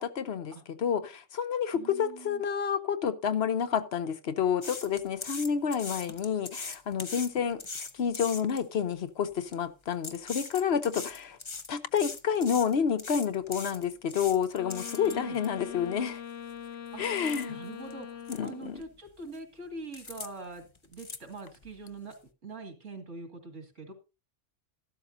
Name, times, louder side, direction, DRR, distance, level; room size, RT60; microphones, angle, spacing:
voice 1, 0.0-7.6 7.9-11.4 11.7-16.2 17.0-17.6 18.3-18.8, left 7 dB, 60° left, 1.0 m, -29 dB
voice 2, 1.7-2.5 15.0-15.4 16.9-17.0 17.5-22.1 22.4-23.9, right 3 dB, 75° right, 2.5 m, -44 dB
sound 1, 4.6-8.6 9.3-9.5 9.9-15.5 16.0-16.1 16.5-16.7 17.0-17.5 17.9-18.0 18.3-18.5 18.8-19.4 19.9-20.3 20.6-21.7 22.1-22.2, left 4 dB, 30° left, 0.7 m, -40 dB
Wind instrument woodwind instrument, 14.5-18.9, left 8 dB, 80° left, 1.1 m, -42 dB
13.5 x 12.0 x 2.7 m
omnidirectional pair, 1.3 m